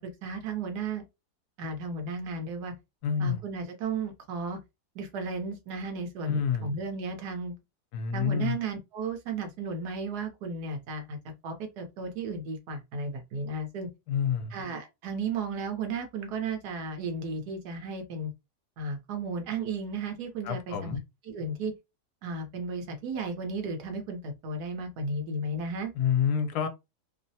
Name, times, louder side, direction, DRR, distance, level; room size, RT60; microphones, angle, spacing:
voice 1, 0.2-1.0 1.6-2.7 3.2-4.6 4.9-7.5 8.1-11.2 11.4-13.9 14.5-18.3 18.8-21.0 21.2-21.7 22.2-25.9, right 3 dB, 75° right, 1.4 m, -34 dB
voice 2, 3.0-3.4 6.3-6.7 7.9-8.6 14.1-14.6 20.4-21.0 26.0-26.7, left 7 dB, 75° left, 1.1 m, -28 dB
3.1 x 2.0 x 2.7 m
omnidirectional pair, 1.7 m